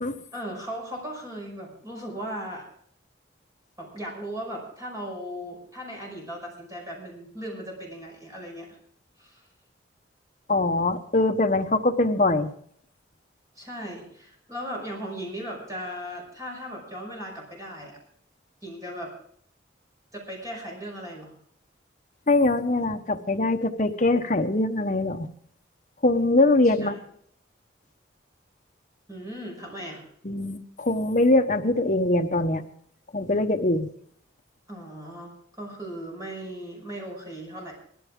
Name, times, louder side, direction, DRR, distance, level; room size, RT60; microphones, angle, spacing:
voice 1, 0.3-2.7 3.8-8.7 9.2-9.4 13.6-18.0 18.6-19.1 20.1-21.3 26.8-27.0 29.1-30.1 34.7-37.7, equal, 15° right, -2 dB, 5.7 m, -37 dB
voice 2, 10.5-12.5 22.3-25.3 26.0-26.9 30.2-32.6 33.1-33.9, left 2 dB, 40° left, 5 dB, 1.0 m, -22 dB
18.5 x 13.5 x 3.7 m, 0.64 s
head